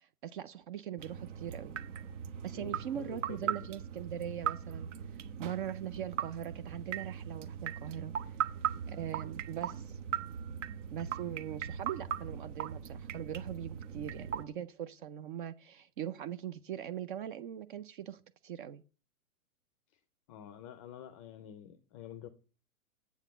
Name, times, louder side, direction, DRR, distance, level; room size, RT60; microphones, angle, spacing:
voice 1, 0.0-1.7 2.4-8.4 8.9-10.0 10.9-18.8, right 10 dB, 35° right, 0.6 m, -41 dB
sound 1, 1.0-14.5, right 9 dB, 55° right, 1.2 m, -39 dB
voice 2, 2.5-3.6 14.0-14.3 20.3-22.3, left 10 dB, 25° left, 0.5 m, -48 dB
8.4 x 5.7 x 7.9 m
hypercardioid pair, 145°, 44 cm